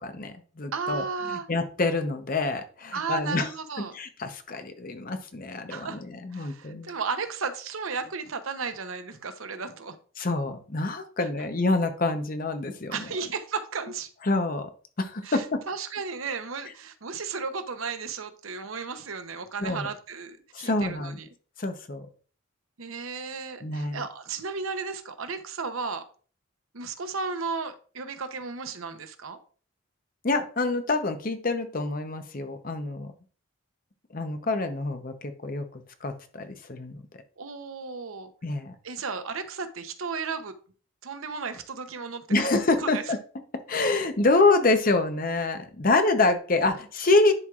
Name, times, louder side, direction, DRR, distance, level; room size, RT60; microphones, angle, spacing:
voice 1, 0.0-1.0 1.3-3.5 3.9-6.9 10.2-13.1 14.2-14.7 15.0-15.6 19.6-19.9 20.5-21.2 21.6-22.1 23.6-24.0 30.2-33.1 34.1-37.0 38.4-38.7 42.3-43.2 43.7-47.3, left 3 dB, 45° left, 7 dB, 0.8 m, -26 dB
voice 2, 0.7-1.5 2.9-4.0 5.7-6.0 6.3-10.0 12.9-14.1 15.2-21.3 22.8-26.0 26.7-29.4 37.4-38.3 38.8-40.5 41.0-42.2 42.8-43.0, right 5 dB, 85° right, 9 dB, 0.8 m, -34 dB
10.5 x 4.6 x 2.4 m, 0.41 s
head